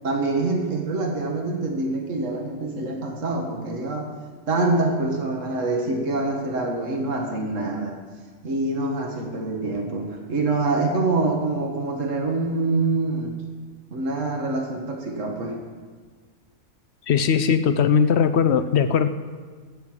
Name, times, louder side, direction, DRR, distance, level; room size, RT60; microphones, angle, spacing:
voice 1, 0.0-4.1 4.5-8.0 8.4-13.3 13.9-15.6, right 2 dB, 65° right, 2 dB, 1.9 m, -25 dB
voice 2, 17.1-19.1, left 7 dB, 65° left, 11 dB, 0.8 m, -19 dB
13.0 x 7.8 x 7.5 m, 1.5 s
omnidirectional pair, 1.4 m